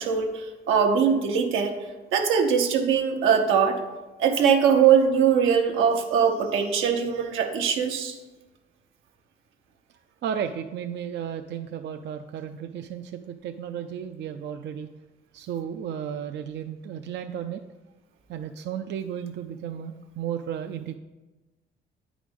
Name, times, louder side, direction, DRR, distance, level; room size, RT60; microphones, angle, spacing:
voice 1, 0.0-1.8 2.1-3.8 4.2-8.2, right 7 dB, 90° right, 3 dB, 1.0 m, -21 dB
voice 2, 10.2-14.9 15.3-17.6 18.3-21.0, right 8 dB, 60° right, 5 dB, 0.5 m, -33 dB
8.9 x 5.0 x 5.2 m, 1.1 s
cardioid pair, 90°, 20 cm